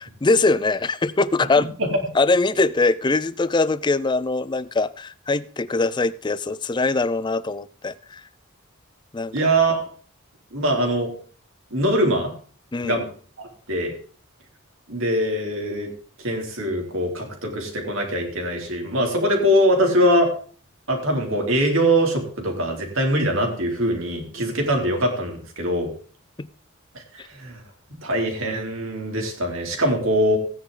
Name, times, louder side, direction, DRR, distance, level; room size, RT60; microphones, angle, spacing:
voice 1, 0.0-1.7 2.1-8.2 9.1-9.5 12.7-13.0 26.4-26.5 27.2-27.3, left 3 dB, 20° left, 0.4 m, -22 dB
voice 2, 9.3-9.8 10.5-11.1 11.7-12.3 12.8-13.1 13.4-13.9 14.9-15.9 16.2-20.3 20.9-25.9 26.9-27.0 27.4-27.6 28.0-30.4, right 1 dB, 65° right, 3.3 m, -22 dB
16.0 x 9.5 x 3.8 m
head